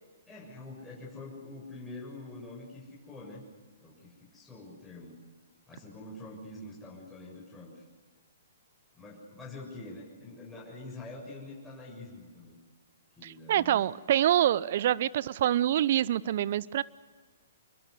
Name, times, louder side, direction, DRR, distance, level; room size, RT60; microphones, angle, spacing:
voice 1, 0.3-3.4 3.8-5.2 5.7-7.8 8.9-12.6 13.1-13.8, left 2 dB, 10° left, -5 dB, 7.2 m, -45 dB
voice 2, 13.2-16.8, right 12 dB, 55° right, 21 dB, 0.7 m, -26 dB
27.5 x 22.5 x 8.3 m, 1.4 s
figure-of-eight pair, 125°, 0 cm